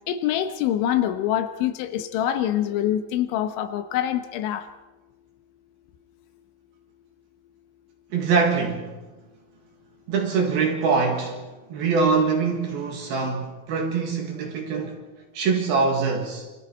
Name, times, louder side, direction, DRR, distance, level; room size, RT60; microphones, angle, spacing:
voice 1, 0.1-4.7, left 11 dB, 80° left, 3.4 m, -25 dB
voice 2, 8.1-9.0 10.1-11.4 11.7-15.0 15.3-16.5, right 5 dB, 60° right, 3.3 m, -23 dB
28.0 x 27.5 x 4.5 m
omnidirectional pair, 5.4 m